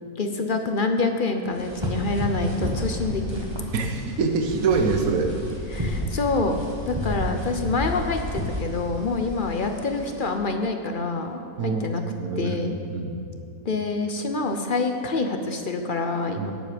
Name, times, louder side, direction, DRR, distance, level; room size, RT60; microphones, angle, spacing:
voice 1, 0.2-3.5 5.7-6.6 6.9-12.0 12.4-12.8 13.6-16.5, left 3 dB, 45° left, 5 dB, 0.8 m, -26 dB
Cloth Flapping, 1.5-10.3, equal, 20° right, 1.7 m, -31 dB
voice 2, 3.7-5.3 11.6-11.9 12.2-12.5 12.9-13.1 16.4-16.5, right 4 dB, 70° right, 4 dB, 1.5 m, -24 dB
17.5 x 7.7 x 5.1 m, 2.6 s
omnidirectional pair, 1.6 m